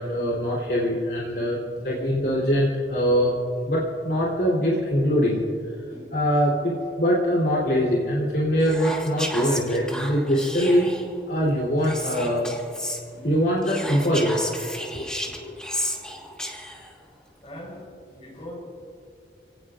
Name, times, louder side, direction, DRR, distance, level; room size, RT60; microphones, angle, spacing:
voice 1, 0.0-3.4 3.7-5.4 5.9-10.9 11.3-12.5 13.1-14.4 14.9-15.1 15.3-15.6, equal, 60° left, -4 dB, 3.4 m, -23 dB
Whispering, 8.6-11.1 11.8-13.0 13.6-16.9, equal, 5° left, 1.5 m, -33 dB
voice 2, 17.4-18.6, left 1 dB, 35° left, -1 dB, 4.9 m, -40 dB
28.0 x 18.0 x 2.5 m, 2.5 s
head